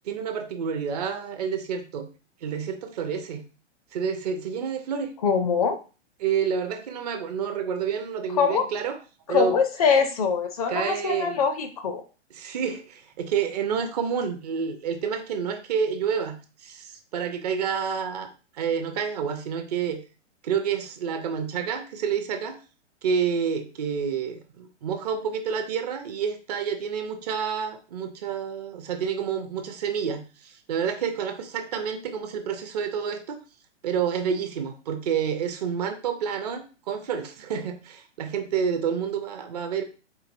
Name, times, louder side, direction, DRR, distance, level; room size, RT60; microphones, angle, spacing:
voice 1, 0.1-2.1 2.4-3.4 3.9-5.1 6.2-9.0 9.3-9.6 10.7-11.4 12.3-18.3 18.6-20.0 20.4-22.5 23.0-33.4 33.8-39.8, right 7 dB, 35° right, 6 dB, 0.5 m, -29 dB
voice 2, 5.2-5.8 8.3-8.7 9.3-12.0, left 6 dB, 35° left, 7 dB, 0.4 m, -23 dB
4.7 x 2.4 x 2.5 m, 0.33 s
figure-of-eight pair, 110°, 36 cm